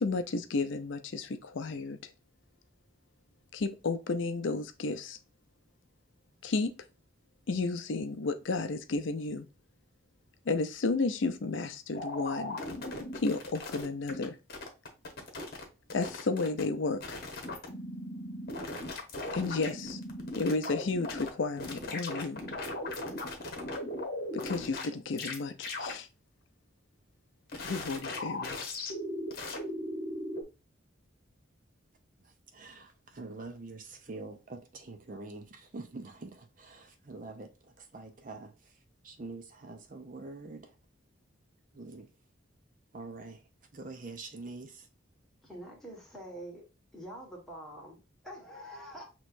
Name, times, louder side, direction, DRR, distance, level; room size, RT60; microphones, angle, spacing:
voice 1, 0.0-2.0 3.5-5.2 6.4-6.7 7.5-9.5 10.5-12.6 13.2-14.4 15.9-17.2 19.3-20.0 20.3-22.4 24.4-26.1 27.6-28.6, left 3 dB, 65° left, 0.5 m, -32 dB
sound 1, 11.9-14.2 14.5-15.6 15.9-16.6 17.0-21.3 21.6-24.9 25.2-25.4 25.6-25.9 27.5-30.4, left 2 dB, 50° left, 1.1 m, -38 dB
voice 2, 32.5-37.5 37.9-38.5 39.0-40.7 41.7-42.1 42.9-43.4 43.7-44.8, right 3 dB, 40° right, 0.6 m, -45 dB
voice 3, 45.4-46.6 46.9-49.0, right 1 dB, ahead, 1.5 m, -45 dB
6.3 x 3.0 x 2.6 m
head